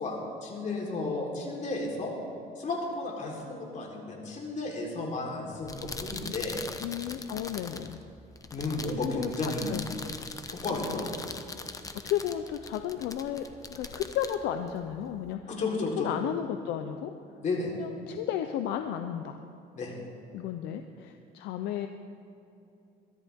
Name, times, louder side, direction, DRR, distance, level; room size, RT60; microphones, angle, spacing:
voice 1, 0.0-2.1 2.6-6.6 8.5-9.7 10.4-11.3 15.5-16.1 17.4-17.7 19.8-20.0, left 3 dB, 45° left, -1 dB, 3.9 m, -33 dB
sound 1, 5.5-15.3, left 3 dB, 20° left, 0.9 m, -42 dB
voice 2, 6.8-8.0 9.0-9.9 10.9-11.0 12.0-15.4 16.0-17.1 17.7-19.4 20.3-21.9, left 10 dB, 90° left, 7 dB, 0.7 m, -33 dB
22.5 x 14.0 x 3.6 m, 2.8 s
cardioid pair, 110°, 17 cm